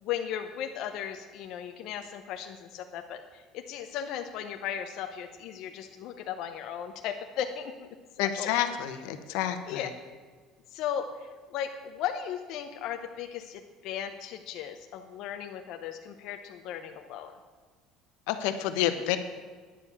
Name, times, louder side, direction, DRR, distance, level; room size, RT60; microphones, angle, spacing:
voice 1, 0.0-7.9 8.1-8.8 9.7-9.9 10.7-17.3, left 9 dB, 55° left, 5 dB, 0.7 m, -36 dB
voice 2, 8.2-9.8 18.3-19.2, left 11 dB, 80° left, 9 dB, 1.0 m, -29 dB
10.0 x 7.0 x 8.6 m, 1.5 s
cardioid pair, 165°, 0 cm